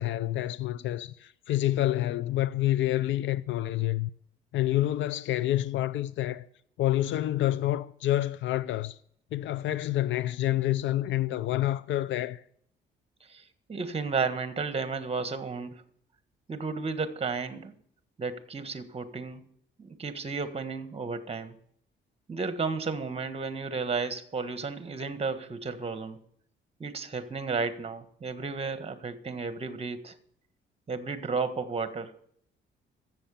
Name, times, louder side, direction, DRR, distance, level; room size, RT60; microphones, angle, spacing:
voice 1, 0.0-4.1 4.5-6.5 6.8-9.0 9.3-12.4, left 14 dB, 75° left, 0.5 m, -28 dB
voice 2, 13.7-15.7 16.5-17.7 18.2-19.4 19.8-21.6 22.3-26.2 26.8-30.1 30.9-32.1, right 4 dB, 30° right, 1.5 m, -33 dB
13.0 x 7.8 x 7.0 m
cardioid pair, 90°, 20 cm